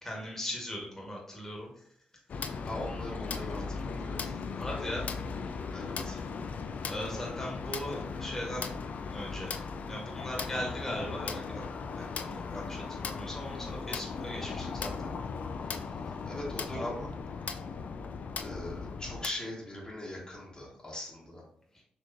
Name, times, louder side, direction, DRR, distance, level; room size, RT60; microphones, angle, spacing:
voice 1, 0.0-1.7 4.2-4.3 4.6-5.1 6.8-8.7 9.1-9.5 9.9-11.6 11.9-15.1 16.7-17.1, left 1 dB, 15° left, -3 dB, 1.4 m, -39 dB
sound 1, 2.3-19.3, left 5 dB, 60° left, 0.3 m, -37 dB
voice 2, 2.7-4.3 5.7-6.2 13.7-14.0 16.2-17.0 18.4-21.4, left 1 dB, 35° left, -4 dB, 1.3 m, -41 dB
4.2 x 2.9 x 2.6 m, 0.68 s
supercardioid pair, 55°, 3 cm